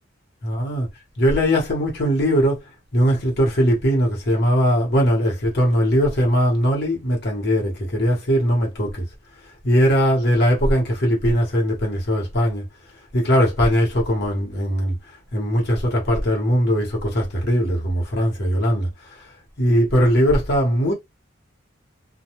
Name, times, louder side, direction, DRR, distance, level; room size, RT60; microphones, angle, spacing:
voice 1, 0.4-0.9 1.2-2.6 2.9-9.0 9.6-12.6 13.1-14.9 15.3-19.3 19.6-20.9, equal, 55° left, 1.0 m, -20 dB
2.2 x 2.2 x 2.9 m
head